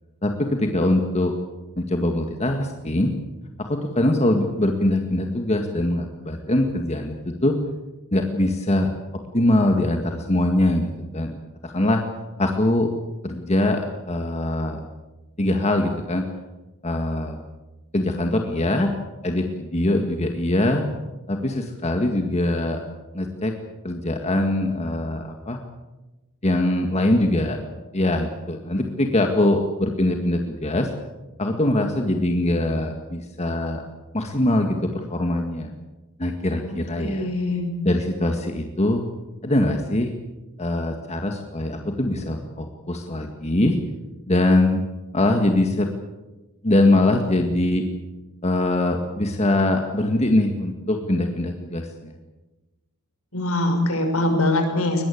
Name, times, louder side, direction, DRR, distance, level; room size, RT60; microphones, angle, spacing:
voice 1, 0.2-1.3 1.8-3.1 3.6-7.6 8.1-8.9 9.3-10.9 11.1-11.4 11.6-12.0 12.4-12.9 13.2-14.8 15.4-16.2 16.8-17.4 17.9-18.9 19.2-20.9 21.3-22.8 23.1-23.5 23.8-25.6 26.4-27.6 27.9-30.9 31.4-33.8 34.1-35.7 36.2-37.3 37.8-39.0 39.4-40.1 40.6-43.8 44.3-44.9 45.1-45.9 46.6-47.8 48.4-52.1, left 1 dB, 30° left, 4 dB, 1.9 m, -22 dB
voice 2, 36.7-37.7 53.3-55.0, left 1 dB, 65° left, 4 dB, 6.3 m, -23 dB
22.0 x 21.5 x 8.6 m, 1.1 s
head